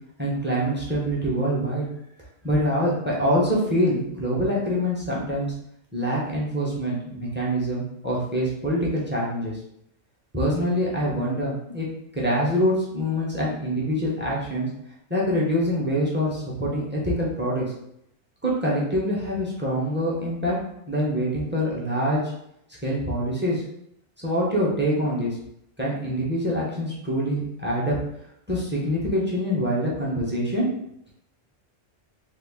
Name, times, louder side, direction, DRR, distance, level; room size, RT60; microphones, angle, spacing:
voice 1, 0.2-1.8 2.4-5.5 5.9-9.6 10.3-11.9 12.1-14.7 15.1-17.7 18.4-20.6 20.9-22.3 22.8-23.6 24.2-25.4 25.8-28.0 28.5-30.7, equal, 15° right, -4 dB, 0.4 m, -25 dB
2.9 x 2.3 x 3.5 m, 0.75 s
omnidirectional pair, 1.3 m